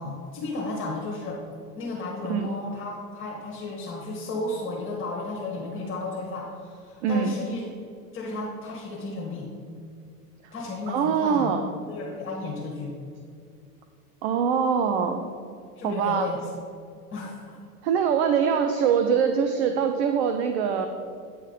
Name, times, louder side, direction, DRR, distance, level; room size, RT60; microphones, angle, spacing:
voice 1, 0.0-1.4 1.8-7.7 8.1-9.5 10.5-11.5 11.8-12.9 15.8-16.4 17.1-17.6, left 3 dB, 25° left, -3 dB, 1.2 m, -33 dB
voice 2, 2.2-2.5 7.0-7.3 10.9-11.7 14.2-15.3 15.8-16.3 17.8-20.9, right 7 dB, 45° right, 6 dB, 0.5 m, -23 dB
8.7 x 3.6 x 5.1 m, 2.3 s
figure-of-eight pair, 90°, 47 cm